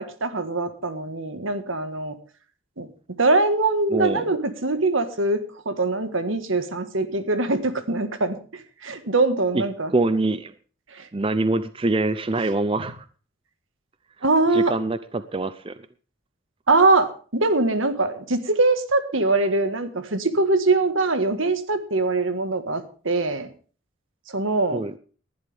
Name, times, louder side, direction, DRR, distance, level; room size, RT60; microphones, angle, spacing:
voice 1, 0.0-2.1 2.8-2.9 3.2-5.4 5.6-8.4 8.8-9.9 10.9-11.1 14.2-14.7 16.7-23.5 24.3-24.8, right 2 dB, 75° right, 9 dB, 1.6 m, -22 dB
voice 2, 3.9-4.3 9.5-9.6 9.9-10.5 11.1-13.0 14.5-15.7 24.7-24.9, right 2 dB, 25° right, 13 dB, 0.5 m, -24 dB
19.0 x 11.5 x 3.5 m, 0.40 s
head